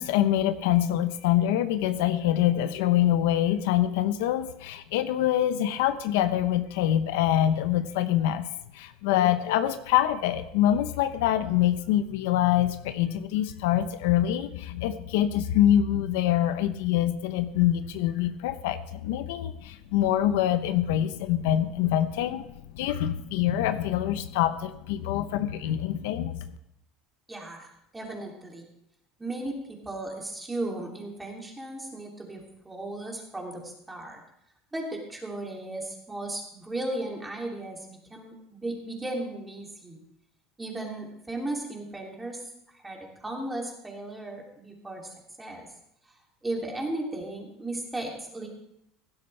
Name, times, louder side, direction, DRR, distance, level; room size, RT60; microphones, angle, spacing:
voice 1, 0.0-26.4, left 12 dB, 90° left, 10 dB, 0.8 m, -25 dB
voice 2, 27.3-28.7 29.2-34.2 34.7-40.0 40.6-42.4 42.7-45.7 46.4-48.5, right 2 dB, 10° right, 0 dB, 2.8 m, -36 dB
15.5 x 12.0 x 3.3 m, 0.78 s
cardioid pair, 140°, 0 cm